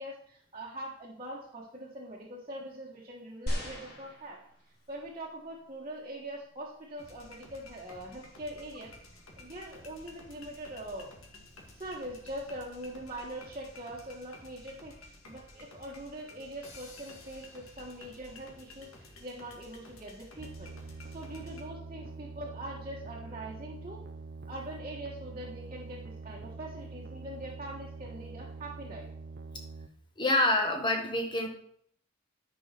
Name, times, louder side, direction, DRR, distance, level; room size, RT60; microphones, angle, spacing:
voice 1, 0.0-4.4 4.9-8.9 9.4-11.1 11.7-20.7 21.1-24.0 24.5-29.1, right 1 dB, 30° right, -4 dB, 1.5 m, -43 dB
sound 1, 3.5-5.0 5.7-5.8, equal, 50° left, 2.7 m, -37 dB
sound 2, 7.0-21.6, left 2 dB, 85° left, 2.1 m, -52 dB
sound 3, 20.4-29.9, right 4 dB, 50° right, 0.6 m, -45 dB
voice 2, 30.2-31.5, left 2 dB, 20° left, 2 dB, 1.5 m, -26 dB
10.0 x 5.6 x 6.0 m, 0.66 s
head